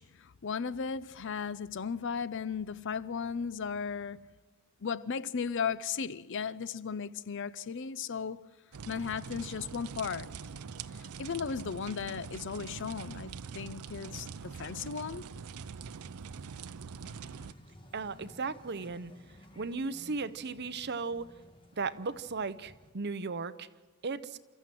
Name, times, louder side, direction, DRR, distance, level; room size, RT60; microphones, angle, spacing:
voice 1, 0.0-4.3 4.8-8.5 8.9-10.3 10.9-15.3, left 6 dB, 55° left, 0.6 m, -36 dB
sound 1, 8.7-17.5, right 5 dB, 85° right, 0.6 m, -44 dB
sound 2, 17.0-22.9, left 1 dB, 25° left, 1.7 m, -56 dB
voice 2, 17.9-19.1 19.6-21.3 21.8-23.7 24.0-24.4, right 4 dB, 50° right, 0.8 m, -36 dB
29.0 x 13.5 x 7.7 m
head